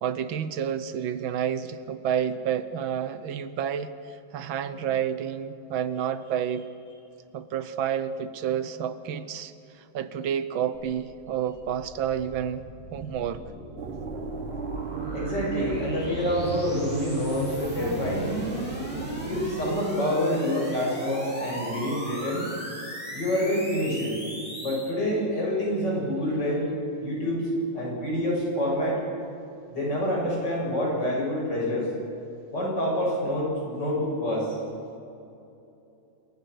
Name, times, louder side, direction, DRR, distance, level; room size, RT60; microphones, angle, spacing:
voice 1, 0.0-6.7 7.3-13.4 17.8-17.9, right 9 dB, 80° right, 13 dB, 1.7 m, -30 dB
sound 1, 10.7-24.9, equal, 5° left, 7.4 m, -38 dB
sound 2, 13.8-19.8, right 6 dB, 50° right, 0.7 m, -35 dB
voice 2, 15.1-18.5 19.2-22.5 23.1-24.2 24.6-26.7 27.0-27.5 27.7-29.0 29.7-31.9 32.5-34.6, left 1 dB, 60° left, -3 dB, 8.2 m, -27 dB
27.0 x 23.0 x 6.4 m, 2.8 s
omnidirectional pair, 2.2 m